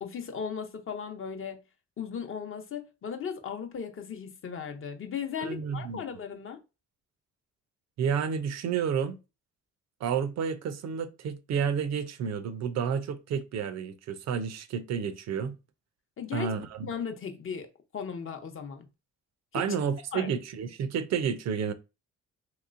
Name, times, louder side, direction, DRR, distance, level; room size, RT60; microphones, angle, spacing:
voice 1, 0.0-1.6 2.0-6.6 16.2-16.5 16.8-17.7 17.9-18.8 19.5-19.6 20.1-20.3, left 7 dB, 45° left, 0.7 m, -36 dB
voice 2, 5.4-6.0 8.0-9.2 10.0-15.6 16.3-16.9 19.5-21.7, right 7 dB, 60° right, 0.5 m, -30 dB
3.0 x 2.9 x 2.5 m
cardioid pair, 90°, 30 cm